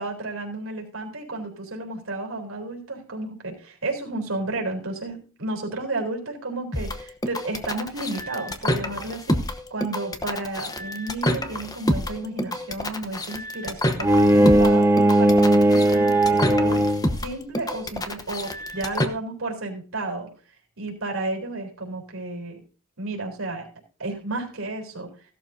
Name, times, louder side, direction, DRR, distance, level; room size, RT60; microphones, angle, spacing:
voice 1, 0.0-9.4 9.7-16.8 17.2-20.3 20.8-22.6 23.0-23.7 24.0-25.1, right 2 dB, 65° right, 1 dB, 3.9 m, -32 dB
sound 1, 6.7-19.1, left 1 dB, 15° left, 0.9 m, -28 dB
Bowed string instrument, 14.0-17.2, right 1 dB, 10° right, 0.8 m, -18 dB
16.5 x 12.0 x 2.7 m, 0.37 s
head